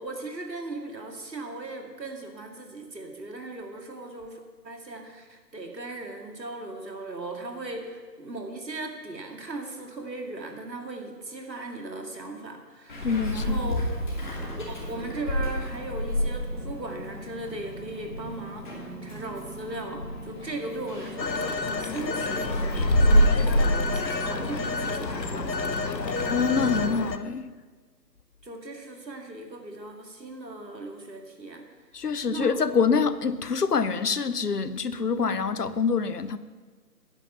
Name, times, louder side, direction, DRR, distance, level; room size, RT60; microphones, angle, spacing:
voice 1, 0.0-13.9 14.6-25.9 26.7-27.0 28.4-31.6 32.3-32.6, right 2 dB, 80° right, 3 dB, 2.5 m, -38 dB
Meow, 12.9-26.8, equal, 30° left, 2.5 m, -28 dB
voice 2, 13.0-13.6 26.3-27.5 31.9-36.4, left 5 dB, 65° left, 14 dB, 0.8 m, -25 dB
Telephone, 21.2-27.2, left 4 dB, 80° left, 1.1 m, -30 dB
12.5 x 9.9 x 5.7 m, 1.4 s
figure-of-eight pair, 165°, 50 cm